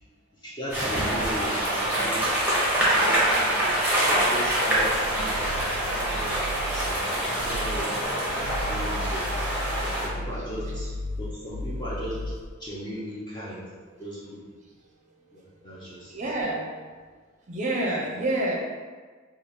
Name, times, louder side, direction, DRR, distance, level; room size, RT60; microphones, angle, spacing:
voice 1, 0.4-2.4 2.8-3.8 4.0-5.4 5.8-8.2 8.7-9.3 9.8-10.9 11.2-12.2 12.6-13.6 14.0-14.4 15.3-16.1, equal, 20° left, -7 dB, 0.6 m, -37 dB
sound 1, 0.7-10.1, right 1 dB, 5° right, 0.9 m, -25 dB
voice 2, 2.9-3.2 16.1-16.7 17.5-18.6, right 1 dB, 35° right, -2 dB, 0.6 m, -28 dB
sound 2, 4.4-7.0 7.4-7.9 8.3-12.6, left 1 dB, 65° left, 0.3 m, -35 dB
3.3 x 2.4 x 4.3 m, 1.5 s
head